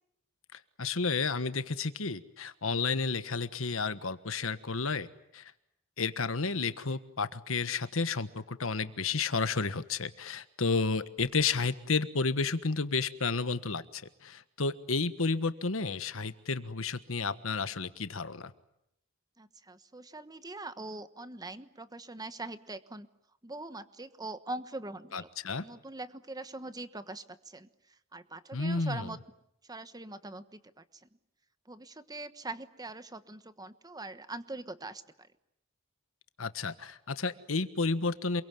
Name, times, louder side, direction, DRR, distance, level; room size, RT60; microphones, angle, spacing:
voice 1, 0.5-5.1 5.3-5.5 6.0-18.5 25.1-25.6 28.5-29.2 36.4-38.4, left 4 dB, 90° left, 12 dB, 1.4 m, -31 dB
voice 2, 19.4-23.1 23.4-25.3 25.6-27.7 28.1-29.2 29.7-30.8 31.7-35.3, right 2 dB, 20° right, 12 dB, 1.2 m, -42 dB
27.5 x 23.0 x 9.3 m, 0.79 s
head